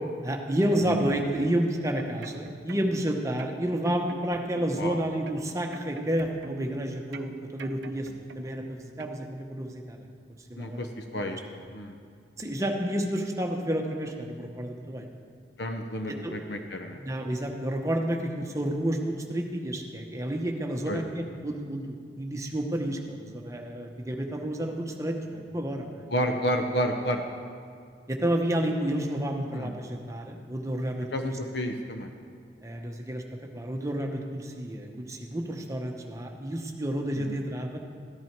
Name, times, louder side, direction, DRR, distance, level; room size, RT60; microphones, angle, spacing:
voice 1, 0.2-8.1 8.4-10.0 10.5-10.8 11.3-11.4 12.4-15.1 16.1-16.3 16.9-26.0 28.1-31.1 32.6-33.2 33.5-37.8, right 1 dB, 15° right, 1 dB, 0.9 m, -30 dB
sound 1, 1.8-3.1 3.4-4.9 5.3-6.8 7.1-8.7 9.0-9.2, right 4 dB, 75° right, 0.6 m, -46 dB
voice 2, 10.6-11.4 11.7-12.0 15.6-17.0 20.9-21.0 26.1-27.2 29.5-29.7 31.1-32.1 37.1-37.4, equal, 70° left, 5 dB, 0.7 m, -30 dB
14.0 x 10.5 x 4.6 m, 2.2 s
head